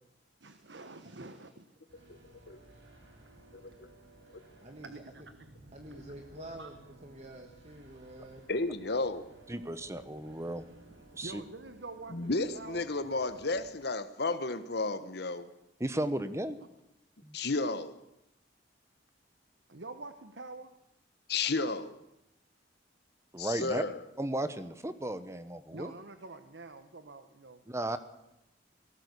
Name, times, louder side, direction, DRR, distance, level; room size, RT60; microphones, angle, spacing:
voice 1, 0.4-2.0 3.6-3.7 4.8-5.5 6.6-6.7 11.2-12.9 19.7-20.7 25.7-27.6, right 3 dB, 70° right, 9 dB, 1.3 m, -47 dB
sound 1, 1.9-13.7, right 2 dB, 90° right, 5.7 m, -57 dB
voice 2, 3.5-3.9 4.3-4.4 8.5-9.3 12.1-15.5 17.3-18.0 21.3-22.0 23.4-24.0, left 3 dB, 60° left, 10 dB, 1.3 m, -32 dB
voice 3, 5.7-6.7 7.0-8.4, right 1 dB, 35° right, 4 dB, 1.7 m, -47 dB
voice 4, 9.5-10.6 11.1-11.4 15.8-16.6 17.2-17.4 23.3-23.8 24.2-25.9 27.7-28.0, right 1 dB, 15° right, 12 dB, 1.1 m, -35 dB
19.0 x 17.5 x 8.4 m, 0.86 s
head